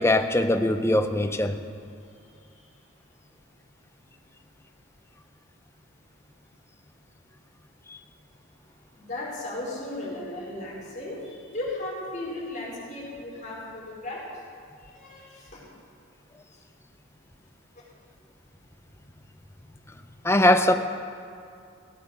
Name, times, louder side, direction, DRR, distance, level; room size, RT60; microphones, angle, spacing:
voice 1, 0.0-1.6 7.9-8.0 20.2-20.7, left 1 dB, 15° left, 8 dB, 0.7 m, -21 dB
voice 2, 8.9-14.2 14.8-15.6, left 2 dB, 35° left, -5 dB, 4.7 m, -36 dB
17.0 x 9.4 x 6.8 m, 2.4 s
head